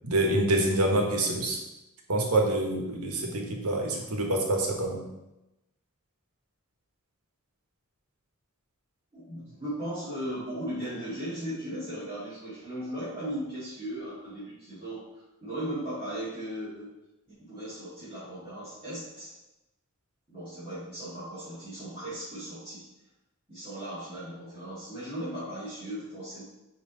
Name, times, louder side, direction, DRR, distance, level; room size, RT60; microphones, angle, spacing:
voice 1, 0.0-1.6 2.1-5.0, right 1 dB, 85° right, 1 dB, 1.3 m, -26 dB
voice 2, 9.1-16.9 17.4-19.4 20.3-22.8 23.5-26.4, right 1 dB, 25° right, -13 dB, 1.8 m, -37 dB
9.0 x 3.2 x 3.9 m, 0.96 s
head